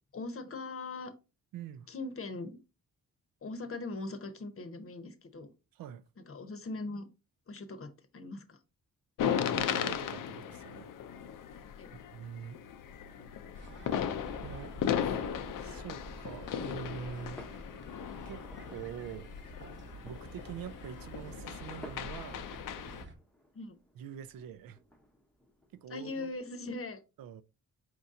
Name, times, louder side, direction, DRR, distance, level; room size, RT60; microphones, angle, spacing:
voice 1, 0.1-1.1 1.9-2.6 3.4-5.5 6.2-7.1 7.5-8.6 11.8-11.9 23.5-23.8 25.9-27.0, left 3 dB, 40° left, 0.8 m, -40 dB
voice 2, 1.5-1.9 5.7-6.0 9.2-10.9 12.1-12.6 14.4-14.7 15.0-15.2 15.6-17.4 18.3-18.4 18.7-19.3 20.0-22.4 24.0-24.8 25.8-26.3 27.2-27.4, right 9 dB, 75° right, 0.5 m, -44 dB
sound 1, 9.2-23.0, left 9 dB, 65° left, 0.5 m, -37 dB
sound 2, 13.5-23.1, right 2 dB, 35° right, 0.9 m, -49 dB
sound 3, 21.8-26.4, equal, 5° left, 0.7 m, -57 dB
4.4 x 2.7 x 3.6 m
cardioid pair, 70°, 35 cm